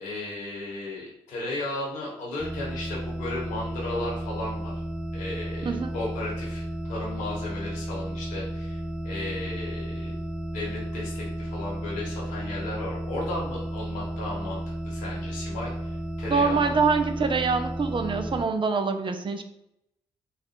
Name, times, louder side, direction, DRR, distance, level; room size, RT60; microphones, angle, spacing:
voice 1, 0.0-4.7 5.1-10.1 10.5-16.8, left 2 dB, 80° left, -4 dB, 1.4 m, -35 dB
sound 1, 2.4-18.5, right 1 dB, 5° right, 0.4 m, -33 dB
voice 2, 16.3-19.4, right 4 dB, 40° right, 7 dB, 0.7 m, -25 dB
4.0 x 2.6 x 4.5 m, 0.81 s
hypercardioid pair, 45°, 13 cm